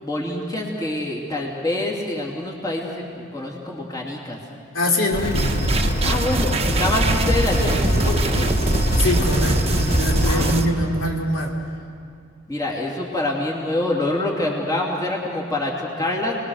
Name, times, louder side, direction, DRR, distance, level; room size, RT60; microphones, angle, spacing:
voice 1, 0.0-4.4 6.0-8.5 10.2-10.7 12.5-16.3, left 2 dB, 20° left, -3 dB, 2.9 m, -26 dB
voice 2, 4.7-5.6 9.0-11.5, left 1 dB, 75° left, -1 dB, 3.1 m, -23 dB
sound 1, 5.1-10.6, equal, 45° left, 3.1 m, -23 dB
sound 2, 5.3-10.6, right 2 dB, 30° right, 1.1 m, -24 dB
29.0 x 20.5 x 6.5 m, 2.2 s
head